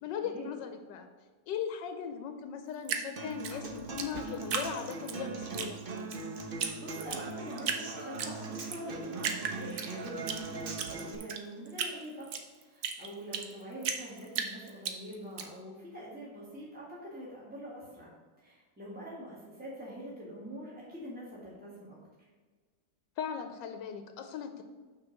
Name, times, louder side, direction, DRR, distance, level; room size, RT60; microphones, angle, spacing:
voice 1, 0.0-1.1 1.5-5.8 23.2-24.6, left 7 dB, 85° left, 7 dB, 1.3 m, -38 dB
Drip, 2.8-5.2 5.5-6.2 6.6-6.7 7.0-7.8 8.2-8.8 9.2-10.4 10.7-13.5 13.8-15.4, right 7 dB, 65° right, 1.2 m, -35 dB
Human voice / Acoustic guitar, 3.2-11.1, right 3 dB, 45° right, 0.7 m, -40 dB
voice 2, 6.7-18.1 18.4-22.0, equal, 5° right, -6 dB, 1.6 m, -45 dB
6.1 x 4.7 x 6.4 m, 1.4 s
omnidirectional pair, 1.9 m